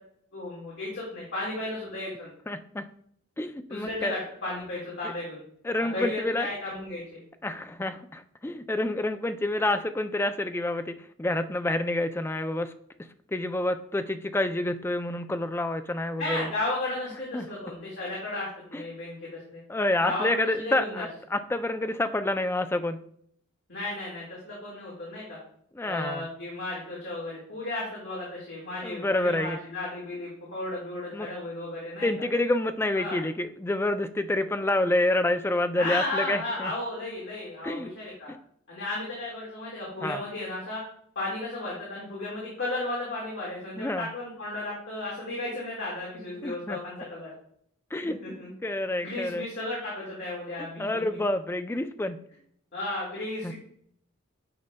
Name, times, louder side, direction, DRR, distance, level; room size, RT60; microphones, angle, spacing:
voice 1, 0.3-2.3 3.7-5.4 5.8-7.2 16.2-19.6 20.0-21.1 23.7-25.4 25.8-32.1 32.9-33.2 35.8-38.3 38.7-40.8 41.2-47.3 48.0-48.5 49.0-51.0 52.7-53.5, left 2 dB, 55° left, -5 dB, 1.9 m, -34 dB
voice 2, 2.5-2.9 3.4-4.1 5.0-5.1 5.6-6.5 7.4-12.7 13.3-16.5 17.3-17.5 18.7-18.8 19.7-23.0 25.8-26.3 28.8-29.6 31.1-31.3 32.0-36.7 37.6-37.9 40.0-40.2 43.8-44.1 46.4-46.8 47.9-48.2 48.6-49.4 50.8-52.2 53.4-53.5, left 1 dB, 10° left, 9 dB, 0.3 m, -28 dB
9.4 x 5.3 x 2.2 m, 0.66 s
head